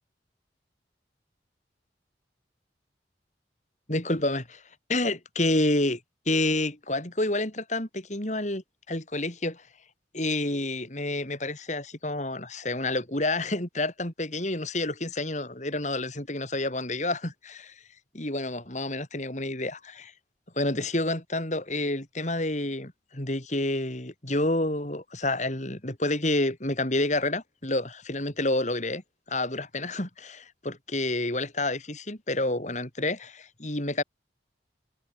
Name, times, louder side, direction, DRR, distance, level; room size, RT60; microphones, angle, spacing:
voice 1, 3.9-4.6 4.9-6.0 6.3-9.6 10.1-17.8 18.1-20.1 20.6-29.0 29.3-34.0, left 2 dB, 40° left, 3.7 m, -29 dB
head